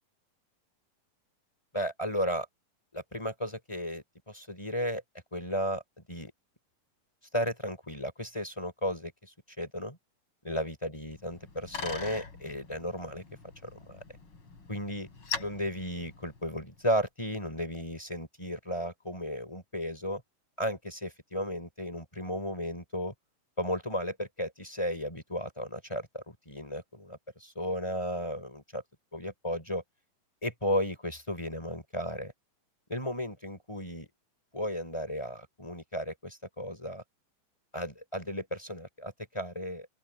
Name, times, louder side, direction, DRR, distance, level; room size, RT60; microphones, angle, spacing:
voice 1, 1.7-2.5 2.9-5.0 5.3-6.3 7.3-10.0 10.4-13.2 13.6-14.0 14.7-15.1 15.4-20.2 20.6-23.1 23.6-28.8 29.1-29.8 30.4-32.3 32.9-34.1 34.5-37.0 37.7-39.9, equal, 10° left, 4.0 m, -34 dB
Bicycle, 11.1-16.8, left 5 dB, 35° left, 4.1 m, -42 dB
open air
omnidirectional pair, 4.1 m